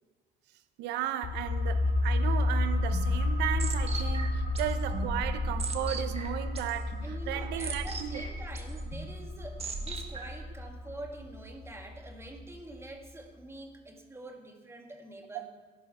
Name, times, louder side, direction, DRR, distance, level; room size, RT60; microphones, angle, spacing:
voice 1, 0.8-8.2 15.3-15.5, right 12 dB, 90° right, 1.0 m, -35 dB
sound 1, 1.2-12.6 12.9-13.0, left 2 dB, 50° left, 3.3 m, -32 dB
sound 2, 2.6-10.5, right 3 dB, 35° right, 1.7 m, -39 dB
voice 2, 7.0-15.5, right 2 dB, 15° right, 2.2 m, -46 dB
19.0 x 11.5 x 4.4 m
cardioid pair, 110°, 17 cm